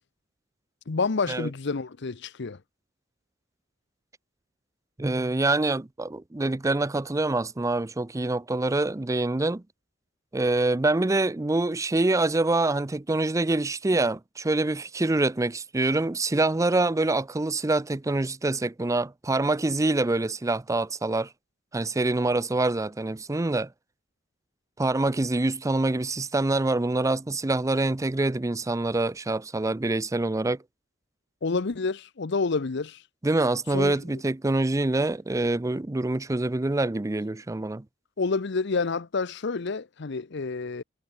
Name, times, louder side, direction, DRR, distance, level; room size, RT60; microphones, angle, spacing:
voice 1, 0.9-2.6 31.4-33.0 33.7-34.2 38.2-40.8, left 4 dB, 65° left, 0.7 m, -29 dB
voice 2, 5.0-9.6 10.3-21.3 21.7-23.7 24.8-30.6 33.2-37.8, right 2 dB, 15° right, 0.5 m, -25 dB
head